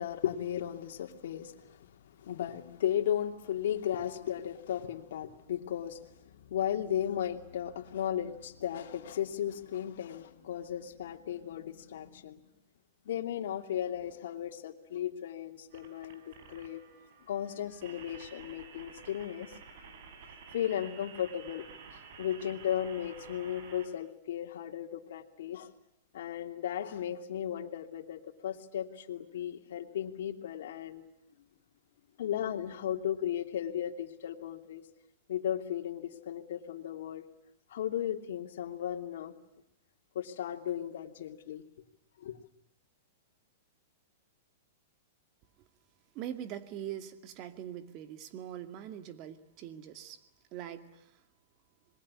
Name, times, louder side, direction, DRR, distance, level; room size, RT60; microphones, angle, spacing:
voice 1, 0.0-12.4 13.0-16.8 17.3-19.8 20.5-25.7 26.1-31.0 32.2-34.8 35.3-37.2 37.7-39.3 40.1-41.6 42.2-42.4, left 10 dB, 70° left, 4 dB, 2.9 m, -35 dB
sound 1, 15.7-23.9, right 6 dB, 55° right, 5.6 m, -52 dB
voice 2, 46.1-50.2 50.5-51.1, right 10 dB, 35° right, 9 dB, 2.3 m, -42 dB
27.0 x 21.5 x 9.9 m, 0.76 s
hypercardioid pair, 150°, 0 cm